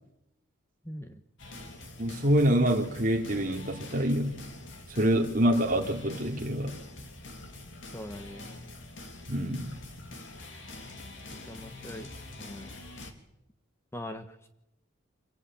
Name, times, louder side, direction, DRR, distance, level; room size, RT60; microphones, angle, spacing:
voice 1, 0.8-1.2 7.9-8.5 11.5-12.1 12.4-12.7 13.9-14.5, left 1 dB, 10° left, 8 dB, 1.1 m, -41 dB
sound 1, 1.4-13.1, left 2 dB, 65° left, 3.2 m, -45 dB
voice 2, 2.0-4.4 4.9-6.8 9.3-9.7, equal, 40° right, 2 dB, 3.0 m, -26 dB
26.0 x 17.0 x 8.9 m, 0.85 s
head